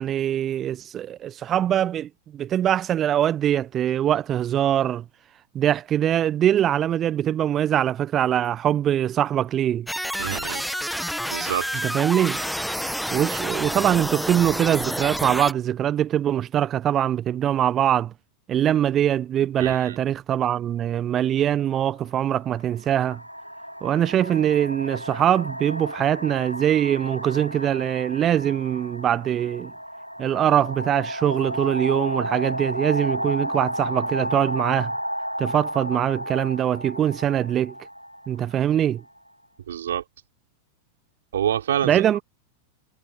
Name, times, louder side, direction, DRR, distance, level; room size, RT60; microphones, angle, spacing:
voice 1, 0.0-5.0 5.5-9.9 11.8-12.4 13.1-18.1 18.5-23.2 23.8-29.7 30.2-34.9 35.4-37.7 38.3-39.0 41.8-42.2, right 10 dB, 30° right, 1.2 m, -23 dB
sound 1, 9.9-15.5, equal, ahead, 1.6 m, -29 dB
voice 2, 10.2-10.6 11.3-11.7 19.6-20.0 39.7-40.0 41.3-42.0, right 10 dB, 65° right, 4.8 m, -26 dB
sound 2, 21.4-21.6 22.5-39.2, equal, 90° right, 0.8 m, -32 dB
figure-of-eight pair, 90°, 0 cm